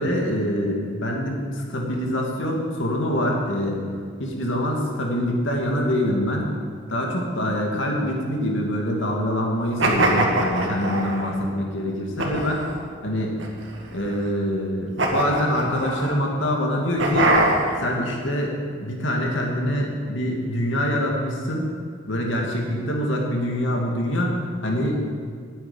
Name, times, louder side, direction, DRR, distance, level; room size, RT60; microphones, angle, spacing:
voice 1, 0.0-3.8 4.2-6.5 6.9-12.6 13.0-13.4 13.9-17.4 17.8-21.7 22.1-25.0, equal, 80° left, -1 dB, 2.5 m, -25 dB
sound 1, 9.8-11.3 12.2-12.8 13.4-14.1 15.0-16.1 17.0-17.8, right 2 dB, 75° right, 2.1 m, -22 dB
9.2 x 9.0 x 9.9 m, 2.1 s
head